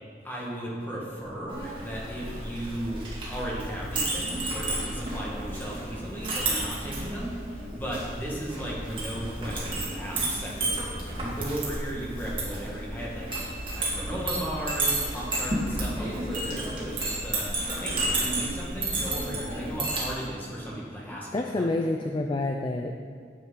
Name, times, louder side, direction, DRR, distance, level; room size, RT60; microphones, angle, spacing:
voice 1, 0.2-21.7, right 1 dB, 10° left, -5 dB, 1.6 m, -36 dB
Chink clink, 1.5-20.1, right 2 dB, 30° right, 2.0 m, -32 dB
voice 2, 21.3-22.9, left 2 dB, 30° left, 4 dB, 0.4 m, -28 dB
9.3 x 8.0 x 3.9 m, 2.1 s
head